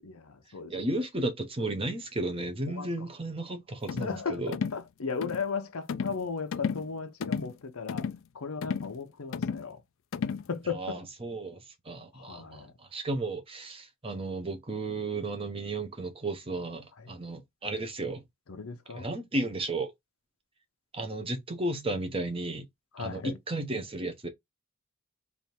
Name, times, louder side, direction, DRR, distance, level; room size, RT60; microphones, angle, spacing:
voice 1, 0.0-1.1 2.7-3.1 4.0-8.1 8.3-9.8 10.5-11.0 12.1-12.7 17.0-17.1 18.5-19.1 22.9-23.4, left 5 dB, 85° left, 0.8 m, -36 dB
voice 2, 0.7-4.6 10.7-18.2 18.9-19.9 20.9-22.6 23.0-24.3, right 2 dB, 25° right, 0.8 m, -34 dB
sound 1, 3.9-4.2 4.5-4.8 5.2-5.5 5.9-6.2 6.5-6.9 7.2-7.5 7.9-8.2 8.6-8.9 9.3-9.7 10.1-10.5, left 6 dB, 65° left, 0.4 m, -33 dB
3.4 x 2.6 x 4.3 m
head